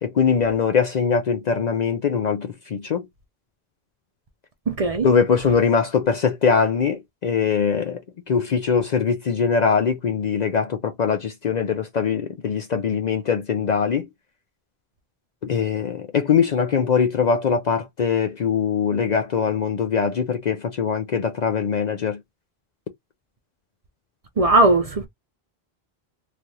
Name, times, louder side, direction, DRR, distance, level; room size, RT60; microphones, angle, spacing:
voice 1, 0.0-3.1 5.0-14.1 15.4-22.2, left 6 dB, 55° left, 0.5 m, -22 dB
voice 2, 4.7-5.1 24.4-25.1, right 2 dB, 45° right, 0.5 m, -18 dB
3.2 x 2.3 x 2.7 m
omnidirectional pair, 1.1 m